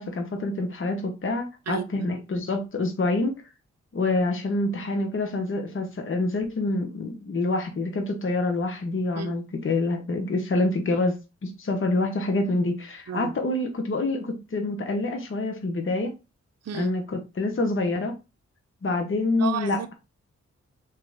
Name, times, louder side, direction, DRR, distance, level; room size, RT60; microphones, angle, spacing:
voice 1, 0.0-3.4 3.9-16.1 16.7-18.1 18.8-19.8, left 2 dB, 45° left, 1.0 m, -26 dB
voice 2, 1.7-2.2 9.1-9.3 13.1-13.3 16.6-16.9 19.3-19.9, right 8 dB, 60° right, 0.6 m, -33 dB
3.1 x 3.0 x 3.6 m
supercardioid pair, 45°, 30 cm